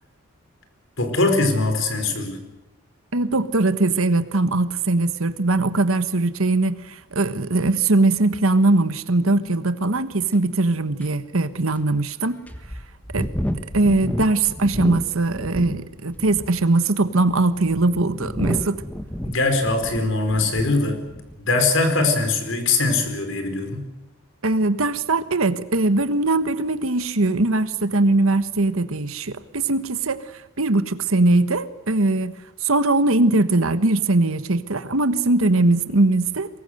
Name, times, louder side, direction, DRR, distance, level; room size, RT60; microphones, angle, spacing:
voice 1, 1.0-2.4 19.2-21.0 21.4-23.8, left 3 dB, 65° left, 7 dB, 4.6 m, -21 dB
voice 2, 3.1-12.4 13.1-13.3 13.7-18.8 24.4-30.2 30.6-32.3 32.6-36.5, right 2 dB, 80° right, 12 dB, 1.4 m, -20 dB
sound 1, 10.3-10.4 11.0-11.1 11.8-11.9 12.5-15.8 16.1-16.6 17.3-20.8 21.1-21.4, equal, 5° left, 1.4 m, -30 dB
23.5 x 20.5 x 8.0 m, 1.0 s
head